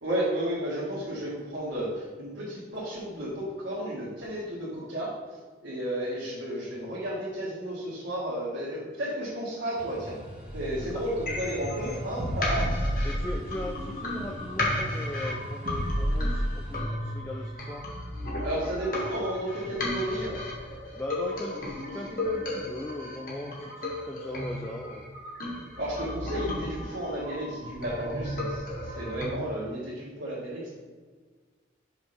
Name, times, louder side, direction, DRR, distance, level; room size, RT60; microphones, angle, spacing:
voice 1, 0.0-5.1 5.6-10.2 10.5-12.7 18.4-20.4 25.8-30.7, right 1 dB, 80° right, -8 dB, 1.5 m, -32 dB
sound 1, 9.7-16.8, right 1 dB, 10° right, 1.2 m, -44 dB
sound 2, 10.5-11.3 12.2-13.9 14.1-14.2 15.6-16.8, equal, 55° right, 1.6 m, -30 dB
sound 3, 11.3-29.3, left 1 dB, 50° left, 1.3 m, -35 dB
voice 2, 13.0-17.9 21.0-25.1, left 1 dB, 10° left, 1 dB, 0.3 m, -38 dB
5.9 x 3.2 x 5.7 m, 1.4 s
head